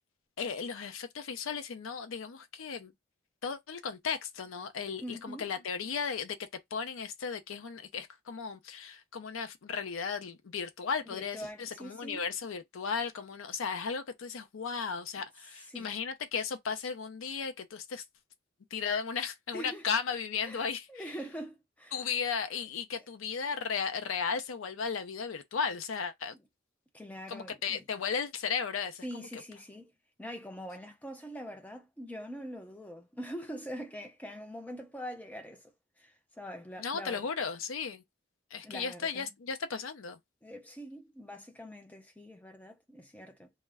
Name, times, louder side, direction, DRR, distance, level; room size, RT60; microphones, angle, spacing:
voice 1, 0.4-2.9 3.4-6.4 6.7-18.0 18.7-21.0 21.9-26.3 27.3-29.3 36.8-38.0 38.5-40.2, left 6 dB, 85° left, 0.5 m, -35 dB
voice 2, 5.0-5.5 11.1-12.3 15.6-16.0 19.5-19.8 20.4-22.1 23.0-23.1 26.9-27.9 29.0-29.9 30.2-35.7 36.0-37.3 38.6-39.3 40.4-43.5, equal, 10° left, 0.4 m, -44 dB
2.2 x 2.1 x 3.3 m
head